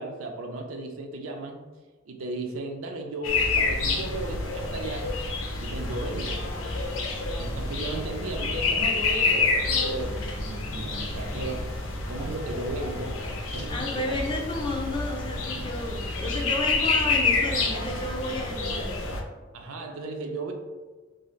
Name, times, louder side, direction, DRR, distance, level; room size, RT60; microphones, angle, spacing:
voice 1, 0.0-1.7 2.1-5.2 5.6-6.4 7.4-13.2 13.5-14.2 19.5-20.5, right 2 dB, 90° right, 3 dB, 0.5 m, -35 dB
sound 1, 3.2-19.2, left 3 dB, 80° left, 0.5 m, -28 dB
voice 2, 13.7-19.0, left 1 dB, 25° left, 0 dB, 0.4 m, -32 dB
2.6 x 2.3 x 3.1 m, 1.3 s
head